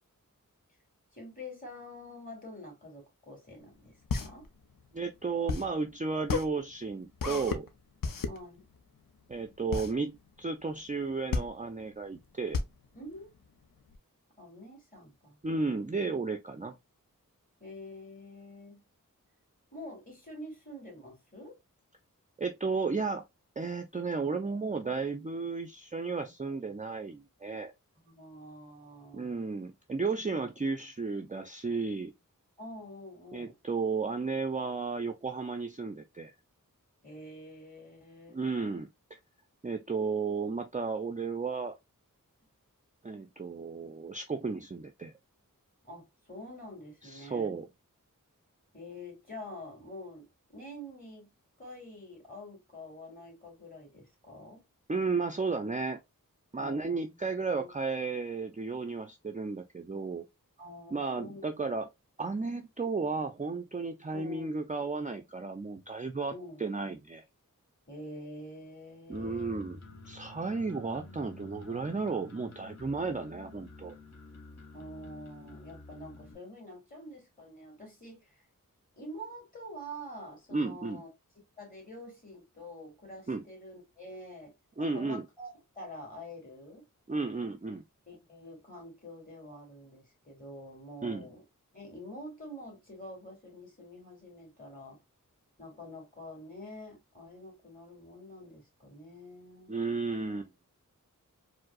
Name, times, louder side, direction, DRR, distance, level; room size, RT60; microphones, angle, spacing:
voice 1, 1.1-4.5 8.2-8.6 13.0-13.3 14.4-15.4 17.6-18.8 19.7-21.6 27.9-29.3 32.6-33.5 37.0-38.4 45.8-47.6 48.7-51.3 51.6-54.6 56.6-57.7 60.6-61.7 62.4-62.7 64.1-64.6 66.3-67.0 67.9-69.6 74.7-78.4 79.0-81.1 81.6-86.9 88.1-91.4 91.7-95.0 95.6-99.8, left 1 dB, 25° left, 2.3 m, -47 dB
sound 1, 3.6-14.0, left 4 dB, 75° left, 0.6 m, -35 dB
voice 2, 4.9-7.7 9.3-12.6 15.4-16.8 22.4-23.2 23.6-27.7 29.1-32.1 33.3-36.3 38.3-39.2 39.6-41.8 43.0-45.1 47.0-47.7 54.9-56.0 56.5-60.3 60.9-61.9 62.2-66.3 66.6-67.2 69.1-69.8 70.1-73.9 80.5-81.0 83.3-83.4 84.8-85.2 87.1-87.8 91.0-91.3 99.7-100.5, right 4 dB, 25° right, 0.4 m, -33 dB
sound 2, 69.1-76.3, left 3 dB, 50° left, 1.1 m, -50 dB
4.5 x 2.0 x 2.3 m
wide cardioid pair, 50°, 33 cm